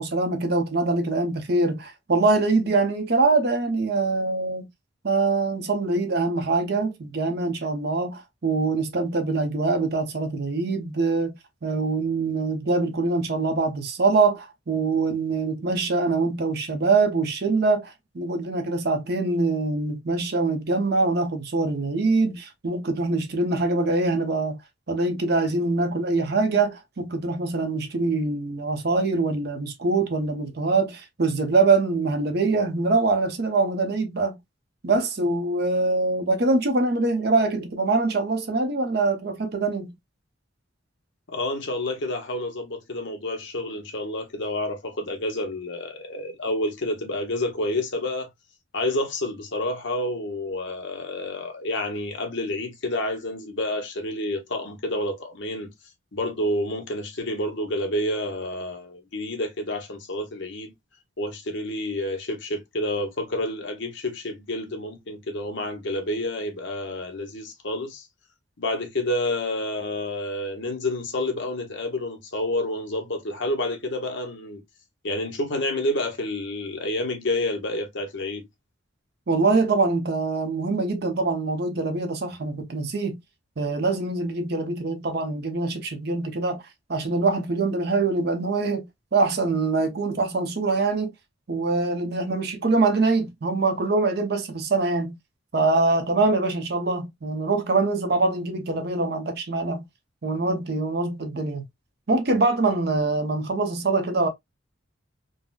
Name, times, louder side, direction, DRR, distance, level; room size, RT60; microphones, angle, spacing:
voice 1, 0.0-4.7 5.0-11.4 11.6-24.6 24.9-34.4 34.8-39.9 79.3-83.2 83.6-86.6 86.9-91.1 91.5-95.2 95.5-99.9 100.2-101.6 102.1-104.3, right 3 dB, 55° right, 0.7 m, -24 dB
voice 2, 41.3-48.3 48.7-55.7 56.1-60.7 61.2-68.1 68.6-74.6 75.0-78.5, left 1 dB, 65° left, 0.9 m, -29 dB
3.8 x 2.1 x 2.3 m
head